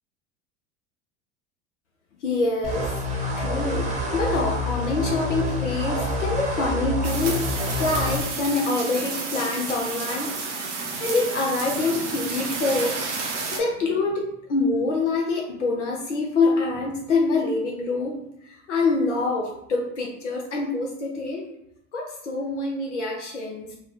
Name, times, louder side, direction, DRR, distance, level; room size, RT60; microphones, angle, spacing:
voice 1, 2.2-7.5 7.8-10.4 11.0-13.0 13.5-18.2 18.4-21.4 21.9-23.7, left 3 dB, 90° left, -1 dB, 0.5 m, -25 dB
sound 1, 2.6-8.2, left 1 dB, 20° right, 0.7 m, -27 dB
sound 2, 7.0-13.6, right 4 dB, 85° right, 0.7 m, -31 dB
2.5 x 2.0 x 3.2 m, 0.81 s
hypercardioid pair, 75°, 35 cm